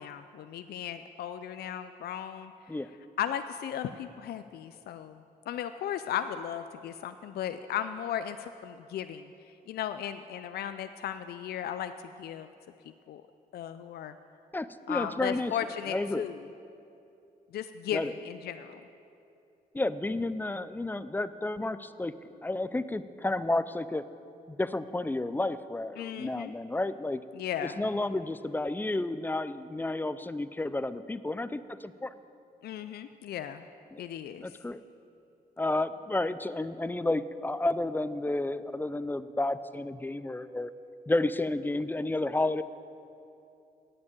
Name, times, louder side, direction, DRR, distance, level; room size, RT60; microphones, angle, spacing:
voice 1, 0.0-2.5 3.2-5.2 5.5-9.3 9.7-11.9 12.2-12.5 13.1-13.2 13.5-14.1 14.9-16.4 17.5-18.8 26.0-26.5 27.3-27.8 32.6-33.6 34.0-34.5, left 10 dB, 75° left, 10 dB, 0.4 m, -36 dB
voice 2, 14.5-15.5 15.9-16.2 17.9-18.1 19.7-22.1 22.4-24.1 24.5-27.2 27.6-32.1 33.9-34.0 34.4-34.8 35.6-40.7 41.1-42.6, left 2 dB, 10° left, 14 dB, 0.4 m, -31 dB
8.8 x 8.4 x 8.8 m, 2.7 s
cardioid pair, 75°, 16 cm